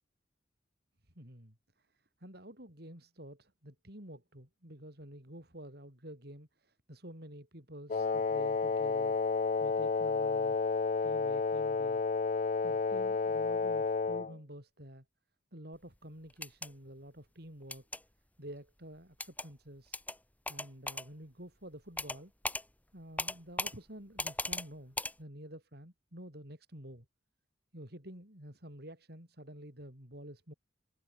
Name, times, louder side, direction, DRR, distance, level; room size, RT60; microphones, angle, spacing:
voice 1, 1.2-10.6 11.0-12.0 12.6-15.0 15.5-17.9 18.4-20.0 20.5-22.3 22.9-27.1 27.7-30.5, right 1 dB, 60° right, 7.6 m, -50 dB
Wind instrument woodwind instrument, 7.9-14.3, left 4 dB, 40° left, 0.5 m, -31 dB
sound 1, 16.3-16.7 17.7-18.0 19.2-19.5 19.9-20.2 20.5-21.1 22.0-22.2 22.4-22.6 23.2-23.7 24.2-24.7 25.0-25.1, left 2 dB, 10° left, 3.9 m, -37 dB
head